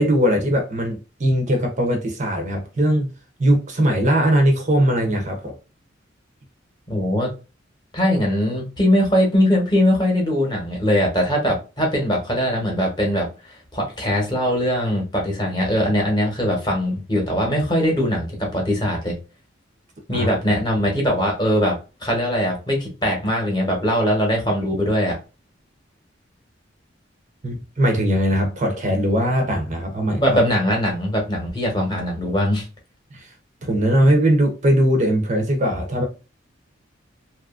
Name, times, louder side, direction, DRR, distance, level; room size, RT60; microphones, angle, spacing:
voice 1, 0.0-3.1 3.4-5.5 20.1-20.3 27.4-30.2 33.1-33.3 33.6-36.1, equal, 35° right, 0.5 m, -20 dB
voice 2, 6.9-7.3 7.9-19.2 20.1-21.8 22.0-25.2 30.2-32.6, equal, 20° left, 0.9 m, -21 dB
2.7 x 2.4 x 2.3 m
head